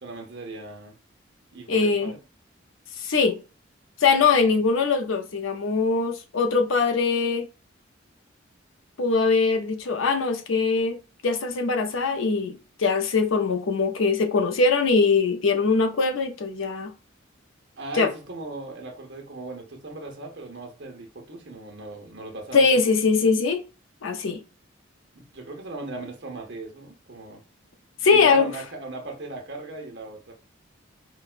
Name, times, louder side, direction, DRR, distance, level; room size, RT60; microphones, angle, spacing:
voice 1, 0.0-1.0 1.5-2.2 4.5-4.6 17.8-22.7 25.2-27.4 28.0-30.3, right 2 dB, 55° right, 0.9 m, -38 dB
voice 2, 1.7-2.1 3.0-3.4 4.0-7.5 9.0-11.0 11.2-16.9 17.9-18.1 22.5-23.6 24.0-24.4 28.0-28.5, left 4 dB, 80° left, 0.5 m, -22 dB
4.9 x 2.2 x 2.4 m
head